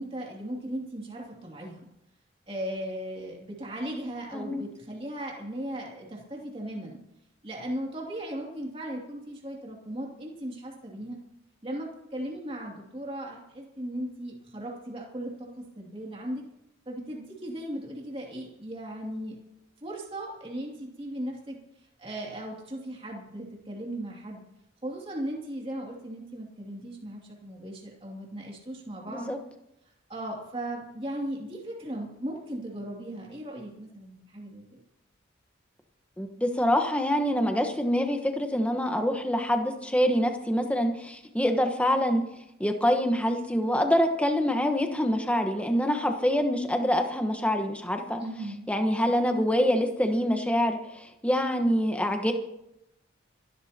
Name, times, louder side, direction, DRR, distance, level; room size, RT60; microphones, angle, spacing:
voice 1, 0.0-1.9 2.5-7.0 7.4-11.2 11.6-16.5 16.9-19.4 19.8-21.6 22.0-24.4 24.8-29.3 30.1-34.8 48.2-48.6, right 1 dB, 30° right, -2 dB, 2.6 m, -37 dB
voice 2, 4.3-4.6 29.1-29.4 36.2-42.2 42.6-48.2 48.7-50.8 51.2-52.3, equal, 5° left, 5 dB, 1.2 m, -25 dB
26.5 x 12.5 x 2.9 m, 0.83 s
head